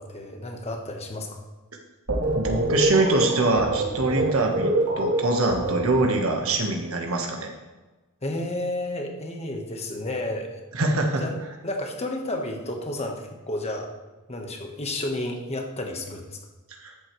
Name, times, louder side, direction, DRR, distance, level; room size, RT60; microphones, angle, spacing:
voice 1, 0.0-1.4 8.2-10.6 11.1-13.9 14.3-16.4, left 1 dB, 30° left, 3 dB, 1.4 m, -31 dB
sound 1, 2.1-6.5, right 2 dB, 90° right, 2.5 m, -25 dB
voice 2, 2.3-7.5 10.7-11.2 16.8-16.9, right 2 dB, 65° right, 2 dB, 1.4 m, -24 dB
13.5 x 7.7 x 3.2 m, 1.2 s
head